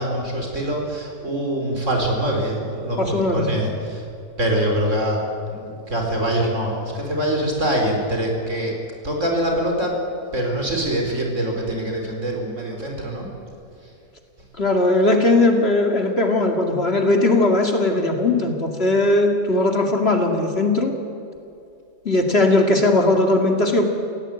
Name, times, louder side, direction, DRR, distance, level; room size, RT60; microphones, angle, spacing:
voice 1, 0.0-4.0 4.4-5.2 5.5-8.7 9.0-10.0 10.3-13.3, right 1 dB, 55° right, 1 dB, 4.8 m, -24 dB
voice 2, 3.0-3.6 14.6-20.9 22.0-23.9, left 2 dB, 45° left, 3 dB, 2.5 m, -19 dB
28.5 x 17.0 x 9.1 m, 2.5 s
omnidirectional pair, 1.5 m